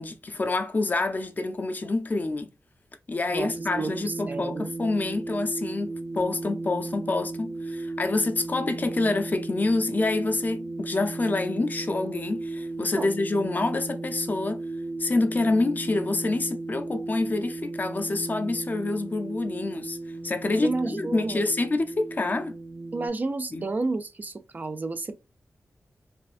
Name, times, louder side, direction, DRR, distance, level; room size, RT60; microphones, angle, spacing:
voice 1, 0.0-2.5 3.1-14.6 15.0-20.0 20.2-22.5 23.5-23.7, left 2 dB, 35° left, 0.5 m, -27 dB
voice 2, 3.3-4.7 13.0-13.1 20.6-21.4 22.9-25.2, right 3 dB, 35° right, 0.4 m, -31 dB
sound 1, 3.4-23.1, right 2 dB, 55° right, 1.0 m, -35 dB
4.2 x 2.5 x 2.5 m
wide cardioid pair, 125°, 5 cm